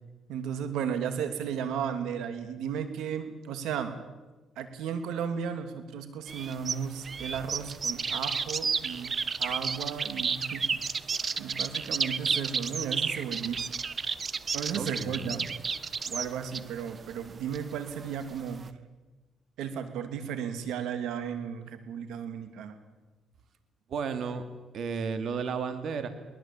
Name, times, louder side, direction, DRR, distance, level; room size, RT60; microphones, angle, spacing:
voice 1, 0.3-3.9 4.6-10.9 11.4-13.6 14.5-15.4 16.1-18.6 19.6-22.8, right 7 dB, 85° right, 9 dB, 2.9 m, -34 dB
sound 1, 6.3-18.7, right 5 dB, 40° right, 1.1 m, -32 dB
voice 2, 14.7-15.5 23.9-24.4 24.7-26.1, right 6 dB, 65° right, 8 dB, 2.6 m, -33 dB
22.5 x 20.0 x 8.9 m, 1.2 s
cardioid pair, 90°, 0 cm